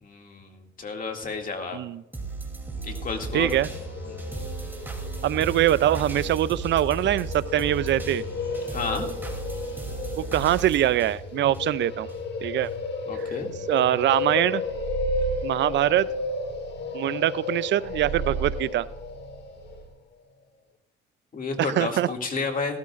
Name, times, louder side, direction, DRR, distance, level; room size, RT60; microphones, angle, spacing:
voice 1, 0.0-1.8 2.8-3.5 4.1-4.2 8.7-9.1 13.1-13.5 21.3-22.8, left 4 dB, 45° left, 3 dB, 2.3 m, -31 dB
sound 1, 2.1-12.2 12.6-12.7, right 3 dB, 10° right, 2.9 m, -36 dB
sound 2, 2.9-19.9, left 3 dB, 60° left, 1.9 m, -33 dB
voice 2, 3.3-3.7 5.2-8.2 10.2-12.1 12.4-12.7 13.7-14.6 15.4-16.1 16.9-18.9 21.6-22.1, right 12 dB, 65° right, 18 dB, 0.4 m, -23 dB
sound 3, 14.7-16.8 17.8-19.9, right 6 dB, 85° right, 1.7 m, -34 dB
17.5 x 13.0 x 2.5 m, 0.86 s
cardioid pair, 90°, 20 cm